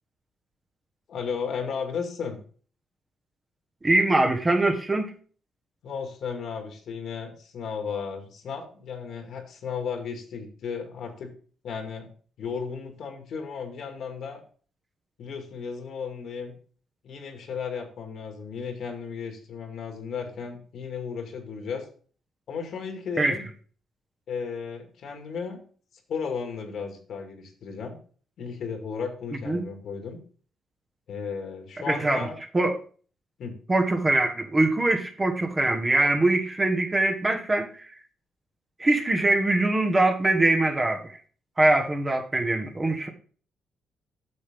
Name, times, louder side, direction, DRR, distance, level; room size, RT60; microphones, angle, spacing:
voice 1, 1.1-2.4 5.8-11.3 11.6-12.1 12.4-14.4 15.2-16.5 17.0-21.9 22.5-23.5 24.3-25.6 26.1-28.0 28.4-30.2 31.1-32.4 33.4-33.6, left 6 dB, 70° left, 4 dB, 2.1 m, -34 dB
voice 2, 3.8-5.1 23.2-23.4 29.4-29.6 31.9-32.3 32.5-32.8 33.7-37.9 38.8-41.1 41.6-43.1, right 2 dB, 25° right, 3 dB, 1.5 m, -23 dB
8.5 x 6.7 x 3.7 m, 0.42 s
cardioid pair, 85°, 0 cm